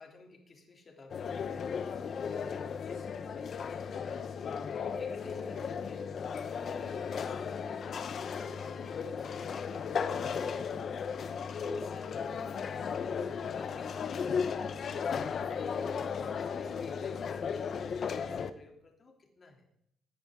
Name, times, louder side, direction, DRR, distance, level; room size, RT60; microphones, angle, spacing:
voice 1, 0.0-6.2 6.5-13.2 13.5-16.0 16.3-19.7, left 3 dB, 40° left, 2 dB, 3.1 m, -52 dB
sound 1, 1.1-18.5, left 6 dB, 55° left, 1.0 m, -35 dB
16.5 x 10.5 x 3.8 m, 0.74 s
cardioid pair, 90°, 0 cm